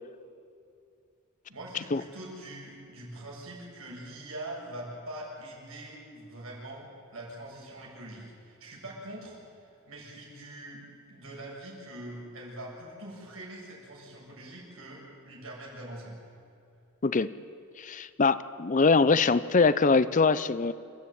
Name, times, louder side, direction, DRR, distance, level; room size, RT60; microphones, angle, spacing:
voice 1, 1.5-16.1, right 1 dB, 70° right, -2 dB, 7.0 m, -43 dB
voice 2, 17.0-17.3 17.8-20.7, left 4 dB, 35° left, 16 dB, 0.5 m, -23 dB
27.5 x 13.0 x 9.3 m, 2.6 s
head